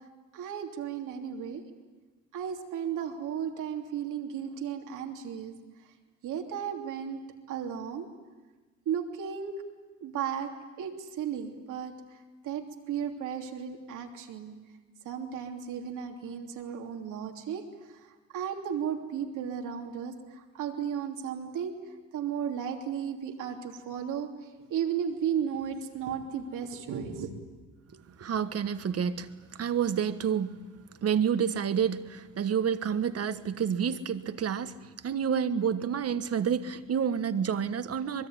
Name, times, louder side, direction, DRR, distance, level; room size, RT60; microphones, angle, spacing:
voice 1, 0.3-1.6 2.3-5.5 6.2-8.1 8.8-9.6 10.0-11.9 12.4-14.5 15.0-17.7 17.9-21.7 22.1-24.3 24.7-27.3, right 8 dB, 85° right, 3 dB, 3.1 m, -34 dB
voice 2, 27.9-30.6 31.0-34.8 35.0-38.3, right 7 dB, 55° right, 11 dB, 1.4 m, -29 dB
24.5 x 21.5 x 9.5 m, 1.2 s
cardioid pair, 90°, 30 cm